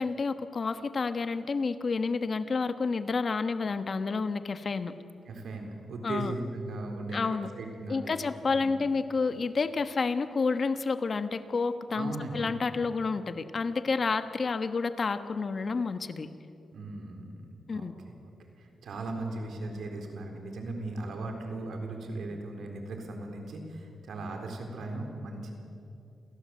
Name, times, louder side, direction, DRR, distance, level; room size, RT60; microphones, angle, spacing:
voice 1, 0.0-4.9 6.0-6.3 7.1-7.5 7.9-16.3 17.7-17.9, left 4 dB, 50° left, 10 dB, 1.2 m, -30 dB
voice 2, 5.3-8.2 8.4-8.8 11.9-12.5 16.7-17.4 17.7-17.9 18.2-25.5, right 2 dB, 80° right, 3 dB, 4.0 m, -38 dB
28.0 x 17.5 x 7.8 m, 2.7 s
cardioid pair, 85°, 0 cm